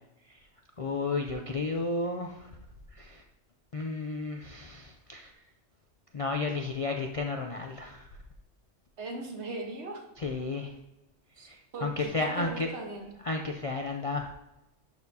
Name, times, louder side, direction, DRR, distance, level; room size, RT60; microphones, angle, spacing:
voice 1, 0.8-2.5 2.9-3.2 3.7-5.3 6.1-8.1 10.2-10.8 11.4-12.7 13.2-14.3, left 3 dB, 50° left, 2 dB, 0.4 m, -33 dB
voice 2, 9.0-10.0 11.4-13.1, right 2 dB, 65° right, 2 dB, 1.4 m, -39 dB
11.5 x 4.4 x 2.7 m, 0.92 s
omnidirectional pair, 1.2 m